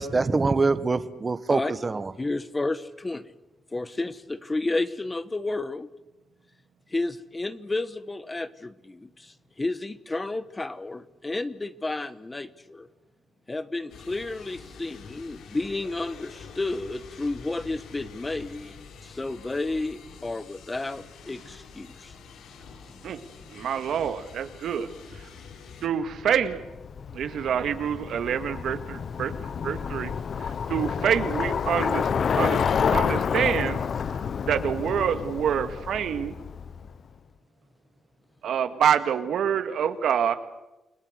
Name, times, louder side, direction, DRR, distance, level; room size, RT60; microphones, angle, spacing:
voice 1, 0.0-2.1, right 3 dB, 25° right, 1.4 m, -24 dB
voice 2, 2.2-3.3 3.7-5.9 6.9-12.9 13.5-18.7 19.0-22.1, left 2 dB, 20° left, 1.1 m, -31 dB
sound 1, 13.9-25.9, left 5 dB, 85° left, 3.3 m, -46 dB
voice 3, 23.5-25.2 25.8-26.6 27.1-29.3 29.6-32.1 32.4-33.8 34.1-34.2 34.5-36.4 38.4-40.4, right 8 dB, 75° right, 1.9 m, -27 dB
Bicycle, 26.0-36.9, left 6 dB, 55° left, 0.9 m, -29 dB
29.5 x 21.0 x 8.1 m
cardioid pair, 120°, 0 cm